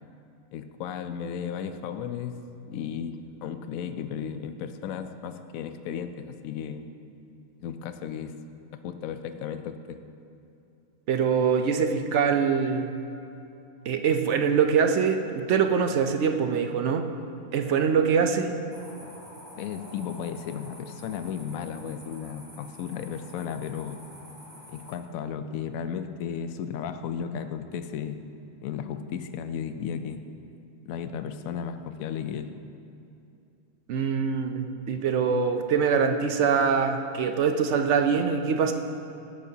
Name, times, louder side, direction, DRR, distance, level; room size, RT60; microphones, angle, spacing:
voice 1, 0.5-2.3 2.7-6.8 7.6-8.4 8.8-10.0 19.6-24.0 24.7-28.2 28.6-30.2 30.9-32.5, left 8 dB, 75° left, 9 dB, 1.0 m, -34 dB
voice 2, 11.1-12.9 13.9-17.1 17.5-18.6 33.9-38.7, right 6 dB, 65° right, 6 dB, 0.8 m, -24 dB
sound 1, 18.7-24.9, equal, 15° right, 2.4 m, -48 dB
16.0 x 8.5 x 2.8 m, 2.7 s
omnidirectional pair, 1.5 m